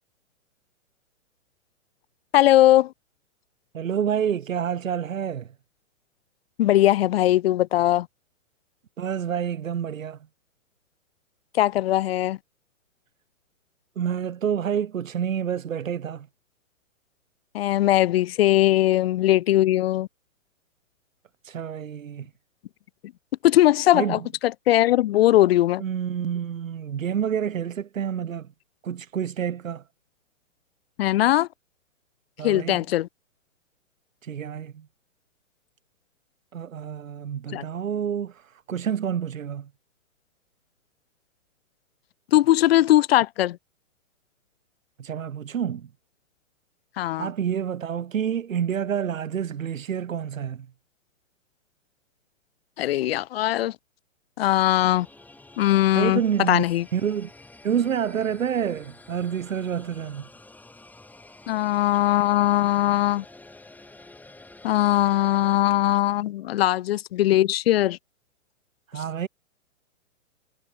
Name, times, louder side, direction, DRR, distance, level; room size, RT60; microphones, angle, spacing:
voice 1, 2.3-2.9 6.6-8.1 11.5-12.4 17.5-20.1 23.4-25.8 31.0-31.5 32.4-33.1 37.5-37.6 42.3-43.6 47.0-47.3 52.8-53.8 54.4-55.1 55.6-56.2 56.5-56.8 61.5-63.2 64.6-68.0, left 14 dB, 45° left, 2.1 m, -20 dB
voice 2, 3.7-5.5 9.0-10.2 14.0-16.3 21.4-22.3 23.9-24.2 25.8-28.5 28.8-29.8 32.4-32.8 34.2-34.8 36.5-39.7 45.0-45.9 47.2-50.7 55.9-56.6 56.9-57.3 57.6-60.3 68.9-69.3, right 8 dB, 75° right, 5.5 m, -28 dB
sound 1, 54.7-65.6, left 2 dB, 5° left, 6.2 m, -49 dB
hypercardioid pair, 145°, 40 cm